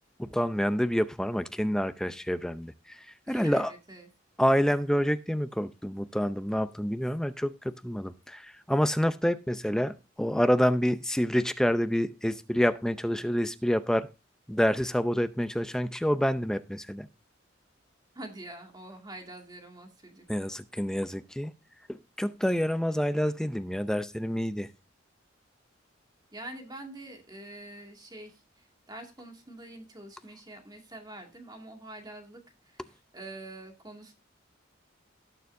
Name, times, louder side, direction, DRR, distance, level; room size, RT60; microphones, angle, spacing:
voice 1, 0.2-3.7 4.4-14.1 14.5-17.1 20.3-21.5 21.9-24.7, equal, 5° left, 11 dB, 0.5 m, -28 dB
voice 2, 3.3-4.1 18.1-20.2 26.3-34.1, right 2 dB, 20° right, 2 dB, 2.2 m, -45 dB
18.5 x 6.9 x 2.6 m, 0.28 s
head